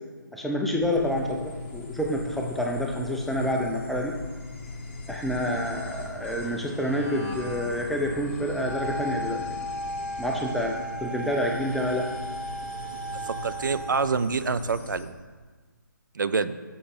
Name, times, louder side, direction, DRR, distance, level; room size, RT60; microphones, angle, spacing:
voice 1, 0.3-4.2 5.1-9.7 10.2-12.1, equal, ahead, 0 dB, 0.3 m, -28 dB
sound 1, 0.8-15.1, left 3 dB, 35° left, 1.0 m, -39 dB
Wind instrument woodwind instrument, 8.6-14.2, right 1 dB, 65° left, 1.0 m, -35 dB
voice 2, 13.2-15.1 16.1-16.6, right 5 dB, 70° right, 13 dB, 0.4 m, -26 dB
6.9 x 5.3 x 5.1 m, 1.4 s
figure-of-eight pair, 145°, 11 cm